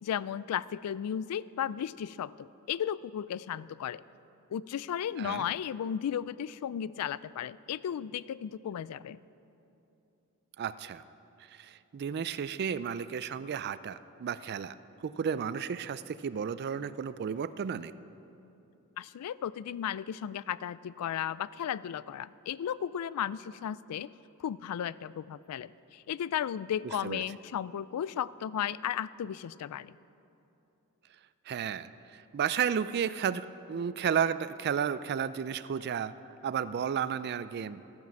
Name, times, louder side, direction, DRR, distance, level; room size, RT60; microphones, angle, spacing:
voice 1, 0.0-4.0 4.5-9.2 19.0-24.1 24.4-30.0, left 9 dB, 85° left, 20 dB, 0.3 m, -35 dB
voice 2, 5.2-5.5 10.6-11.0 11.5-14.7 15.0-17.9 27.0-27.2 31.5-36.1 36.4-37.8, right 7 dB, 45° right, 16 dB, 0.3 m, -33 dB
13.0 x 9.1 x 7.4 m, 2.9 s
head